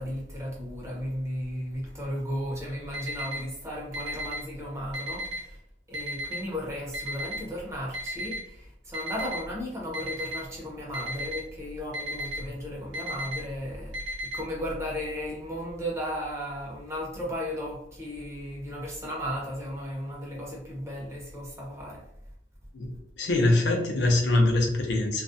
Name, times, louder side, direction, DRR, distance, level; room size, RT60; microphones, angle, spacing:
voice 1, 0.0-5.6 5.9-22.1, equal, 15° right, -4 dB, 0.7 m, -35 dB
Alarm, 2.9-3.4 3.9-4.4 4.9-5.4 5.9-6.4 6.9-7.4 7.9-8.4 8.9-9.4 9.9-10.4 10.9-11.4 11.9-12.4 12.9-13.4 13.9-14.4, equal, 90° right, 0.6 m, -33 dB
voice 2, 22.7-25.2, left 2 dB, 65° left, 2 dB, 0.5 m, -24 dB
2.4 x 2.1 x 2.5 m, 0.76 s
head